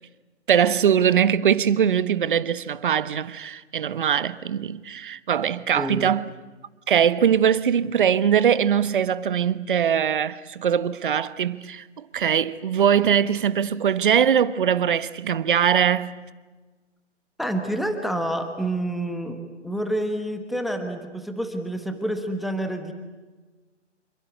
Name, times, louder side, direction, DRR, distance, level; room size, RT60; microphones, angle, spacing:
voice 1, 0.5-6.3 6.9-16.1, right 8 dB, 45° right, 1.2 m, -21 dB
voice 2, 5.8-6.1 17.4-22.9, right 1 dB, ahead, 1.1 m, -28 dB
27.5 x 23.5 x 8.2 m
figure-of-eight pair, 145°, 36 cm